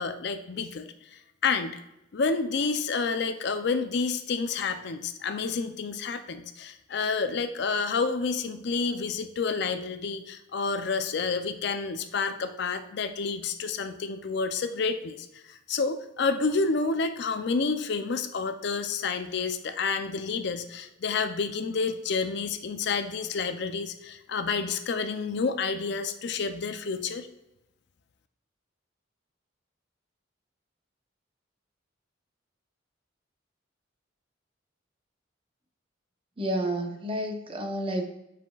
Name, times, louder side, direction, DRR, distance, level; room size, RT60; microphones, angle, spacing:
voice 1, 0.0-1.8 2.1-27.3, left 4 dB, 55° left, 9 dB, 0.5 m, -29 dB
voice 2, 36.4-38.0, right 1 dB, 25° right, 4 dB, 0.8 m, -30 dB
7.3 x 5.8 x 2.3 m, 0.90 s
head